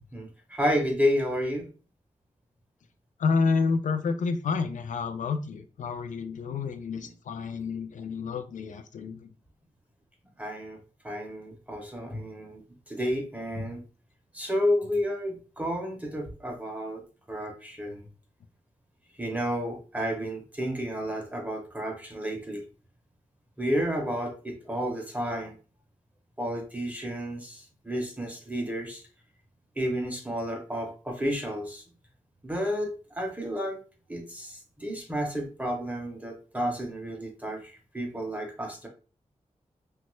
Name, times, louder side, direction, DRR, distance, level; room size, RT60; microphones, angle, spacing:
voice 1, 0.0-1.7 7.0-7.1 10.4-10.8 11.0-13.8 14.3-17.0 17.3-18.1 19.2-22.6 23.6-25.6 26.4-29.0 29.8-31.8 32.4-33.8 34.1-38.9, equal, 10° right, 2 dB, 0.5 m, -31 dB
voice 2, 3.2-9.3, left 4 dB, 80° left, 9 dB, 0.4 m, -29 dB
3.0 x 2.2 x 3.0 m, 0.35 s
wide cardioid pair, 175°, 13 cm